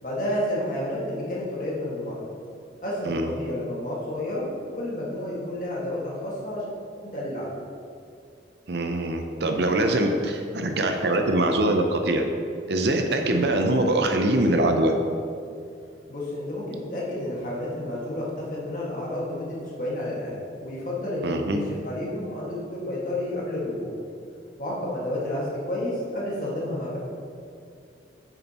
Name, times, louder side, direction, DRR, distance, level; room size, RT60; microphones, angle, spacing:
voice 1, 0.0-2.3 2.8-6.7 7.1-7.5 16.1-21.6 21.8-23.9 24.6-27.0, left 1 dB, 45° left, -6 dB, 1.8 m, -30 dB
voice 2, 8.7-12.2 12.7-14.9 21.2-21.6, right 1 dB, 60° right, 4 dB, 0.6 m, -23 dB
8.2 x 6.8 x 3.0 m, 2.5 s
head